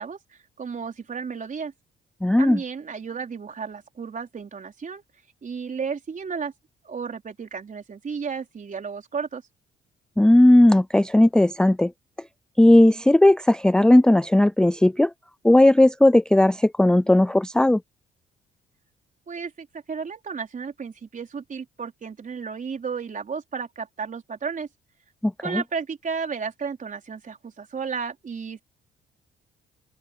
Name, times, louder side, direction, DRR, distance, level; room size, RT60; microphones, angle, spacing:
voice 1, 0.0-1.7 2.4-5.0 5.4-6.5 6.8-9.4 19.3-24.7 25.4-28.6, right 5 dB, 40° right, 4.4 m, -33 dB
voice 2, 2.2-2.6 10.2-11.9 12.6-15.1 15.4-17.8 25.2-25.6, left 1 dB, 5° left, 0.4 m, -16 dB
open air
cardioid pair, 90°, 20 cm